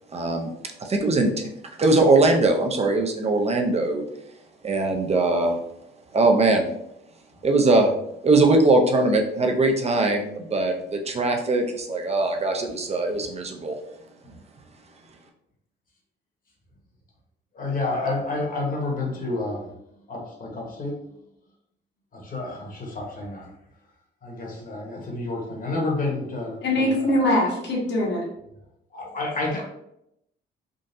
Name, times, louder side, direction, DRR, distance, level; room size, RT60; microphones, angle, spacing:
voice 1, 0.1-0.5 0.8-1.3 1.8-4.0 4.6-5.6 6.1-6.7 7.4-7.9 8.2-13.8, right 2 dB, 30° right, 3 dB, 0.6 m, -21 dB
voice 2, 17.5-19.6 20.1-20.9 22.1-23.5 24.2-27.2 28.9-29.6, left 2 dB, 45° left, -2 dB, 1.3 m, -29 dB
voice 3, 26.6-28.2, left 1 dB, 60° left, -3 dB, 1.3 m, -22 dB
3.8 x 2.4 x 2.7 m, 0.79 s
cardioid pair, 90°, 20 cm